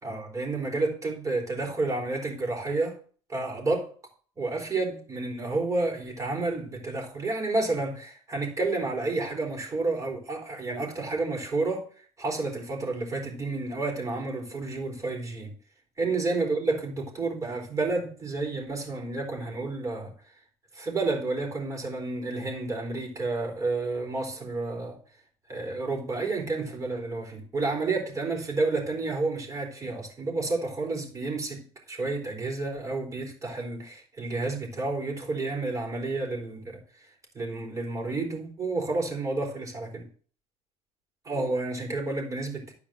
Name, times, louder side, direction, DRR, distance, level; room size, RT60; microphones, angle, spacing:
voice 1, 0.0-3.0 3.3-3.9 4.4-11.9 12.2-15.5 16.0-20.1 20.7-25.0 25.5-37.1 37.3-40.1 41.2-42.7, right 3 dB, 25° right, 4.2 m, -30 dB
10.5 x 4.9 x 7.6 m
supercardioid pair, 110°, 13 cm